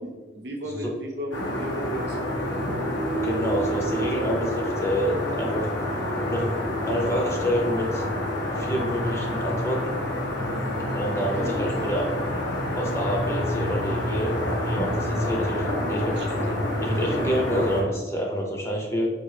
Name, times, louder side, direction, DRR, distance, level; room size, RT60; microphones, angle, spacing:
voice 1, 0.3-2.6 11.3-11.9 16.1-16.3, equal, 65° right, 1 dB, 0.6 m, -35 dB
sound 1, 1.3-17.8, left 1 dB, 90° left, 0.9 m, -28 dB
voice 2, 3.1-5.7 6.3-8.0 8.5-10.0 10.9-12.1 12.8-16.5 16.8-19.1, equal, 15° left, 0 dB, 0.5 m, -28 dB
4.5 x 2.4 x 3.2 m, 1.2 s
head